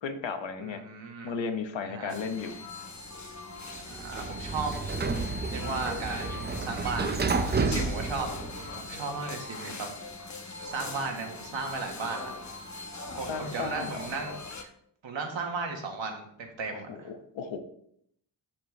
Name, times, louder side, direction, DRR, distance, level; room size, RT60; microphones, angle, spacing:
voice 1, 0.0-0.8 1.2-2.6 13.3-13.9 16.7-17.6, left 5 dB, 80° left, 7 dB, 1.1 m, -34 dB
voice 2, 0.6-1.4 1.8-2.1 3.8-4.7 5.5-7.2 7.5-9.9 10.4-12.3 13.2-14.7 15.0-17.1, right 4 dB, 85° right, 3 dB, 1.6 m, -36 dB
sound 1, 2.1-14.6, left 3 dB, 40° left, 1.0 m, -41 dB
Sliding door, 3.8-9.0, right 4 dB, 25° right, 0.4 m, -31 dB
12.5 x 4.5 x 3.2 m, 0.67 s
wide cardioid pair, 145°, 45 cm